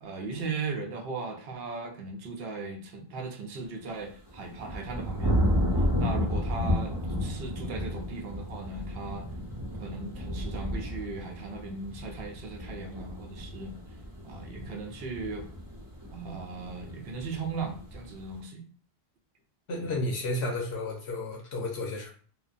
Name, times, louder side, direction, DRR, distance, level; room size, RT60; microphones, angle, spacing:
voice 1, 0.0-5.4 6.0-6.9 7.2-9.3 9.8-13.7 14.2-15.5 16.1-18.6 19.8-20.0, right 4 dB, 70° right, 3 dB, 0.8 m, -37 dB
sound 1, 4.1-18.3, equal, 25° right, 0.7 m, -32 dB
voice 2, 19.7-22.1, left 2 dB, 85° left, 0 dB, 1.0 m, -32 dB
3.1 x 2.1 x 2.4 m, 0.43 s
omnidirectional pair, 1.1 m